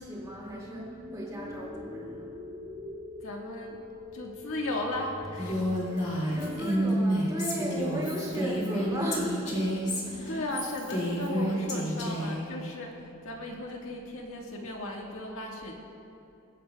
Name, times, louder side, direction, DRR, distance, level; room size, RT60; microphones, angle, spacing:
voice 1, 0.0-2.3 5.9-9.6 10.0-10.1, right 1 dB, 15° right, -4 dB, 2.2 m, -36 dB
sound 1, 0.5-10.5, left 1 dB, ahead, 1.3 m, -43 dB
voice 2, 3.2-3.8 4.1-5.7 10.3-15.7, left 1 dB, 75° left, 0 dB, 1.6 m, -36 dB
Female speech woman speaking, 5.4-12.4, equal, 35° left, 2.2 m, -30 dB
23.0 x 9.7 x 2.3 m, 2.7 s
head